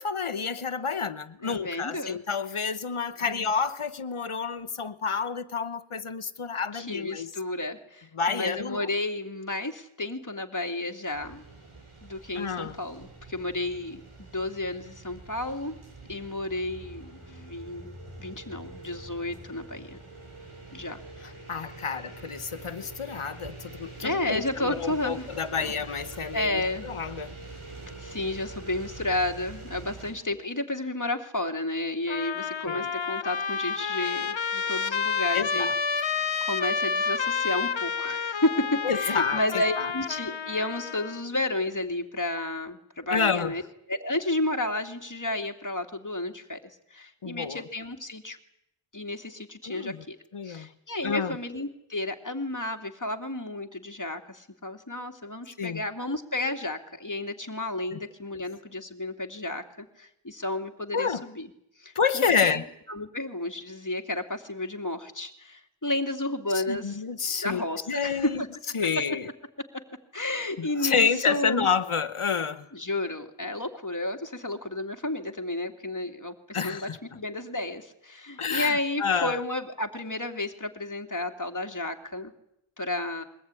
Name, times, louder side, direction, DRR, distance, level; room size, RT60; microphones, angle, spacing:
voice 1, 0.0-7.3 8.1-8.9 12.3-12.8 21.2-27.4 32.6-32.9 35.3-35.7 38.8-39.9 43.1-43.6 47.2-47.6 49.6-50.0 50.3-50.7 51.0-51.4 55.6-55.8 60.9-61.2 61.9-62.7 66.7-68.4 68.7-69.3 70.6-72.7 76.5-77.0 78.4-79.4, left 5 dB, 85° left, 1.2 m, -29 dB
voice 2, 1.4-2.2 3.3-3.4 6.7-11.4 12.0-15.8 16.1-20.0 20.7-21.0 24.0-25.3 25.6-25.7 26.3-26.9 28.0-35.7 36.1-43.6 43.9-46.6 46.9-48.4 48.9-50.2 50.4-61.5 61.8-62.6 62.9-67.0 67.4-68.5 70.1-71.7 72.7-76.9 77.1-82.3 82.8-83.2, left 2 dB, 40° left, 2.7 m, -32 dB
sound 1, 11.1-30.1, right 3 dB, 85° right, 7.8 m, -45 dB
Trumpet, 32.1-41.2, left 5 dB, 65° left, 1.1 m, -29 dB
22.5 x 19.0 x 9.8 m
wide cardioid pair, 50°, 49 cm